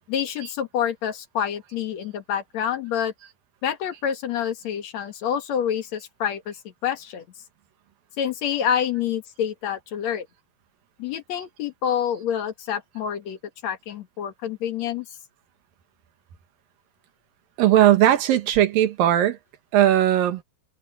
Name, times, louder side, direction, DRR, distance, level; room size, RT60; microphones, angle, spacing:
voice 1, 0.1-3.1 3.6-6.6 6.8-7.2 8.2-10.3 11.0-15.1, left 9 dB, 55° left, 2.4 m, -27 dB
voice 2, 17.6-19.4 19.7-20.4, right 12 dB, 75° right, 3.0 m, -18 dB
omnidirectional pair, 4.2 m